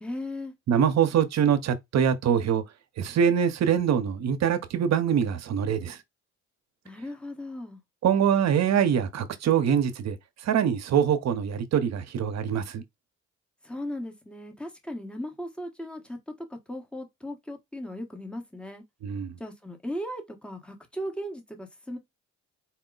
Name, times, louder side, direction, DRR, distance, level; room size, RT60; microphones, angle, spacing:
voice 1, 0.0-0.5 6.8-7.8 13.6-16.2 16.5-18.8 19.4-22.0, left 1 dB, 5° left, 1.1 m, -37 dB
voice 2, 0.7-2.6 3.0-6.0 8.0-10.2 10.5-12.8 19.0-19.3, right 8 dB, 60° right, 0.8 m, -24 dB
4.4 x 2.1 x 3.8 m
cardioid pair, 90°, 30 cm